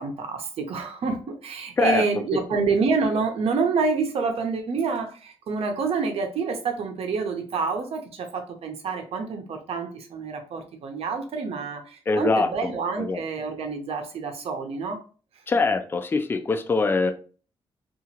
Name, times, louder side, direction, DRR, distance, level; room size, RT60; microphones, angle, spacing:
voice 1, 0.0-15.0, right 4 dB, 70° right, 0.6 m, -27 dB
voice 2, 12.1-12.7 13.0-13.2 15.5-17.1, left 4 dB, 20° left, 0.3 m, -23 dB
2.8 x 2.4 x 2.9 m
cardioid pair, 100°, 11 cm